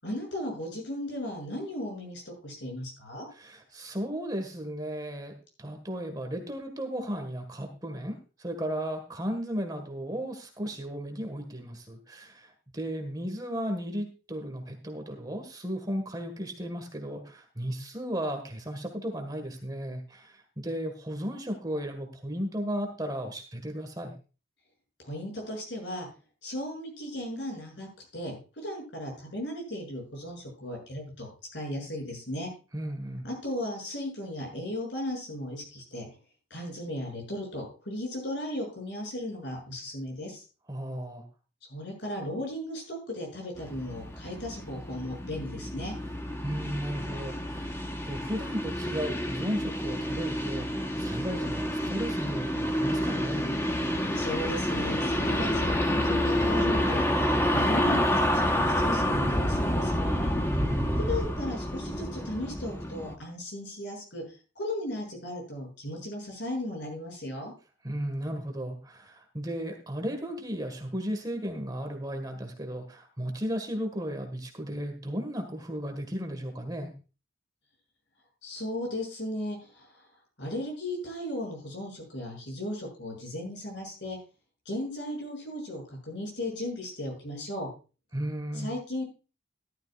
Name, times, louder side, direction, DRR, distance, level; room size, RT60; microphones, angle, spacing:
voice 1, 0.0-3.3 25.0-26.1 26.4-27.9 28.1-32.5 33.2-36.1 36.5-40.4 41.7-45.9 54.1-60.3 61.1-64.2 64.5-67.5 78.4-80.0 80.4-84.2 84.7-87.7 88.5-89.0, left 1 dB, 65° left, 1 dB, 7.3 m, -36 dB
voice 2, 3.3-24.1 32.7-33.3 40.7-41.2 46.4-53.5 60.5-61.1 67.8-76.9 88.1-88.7, equal, 20° right, 4 dB, 1.7 m, -35 dB
sound 1, 43.6-63.1, equal, 15° left, 1.1 m, -28 dB
15.0 x 12.0 x 2.5 m, 0.33 s
head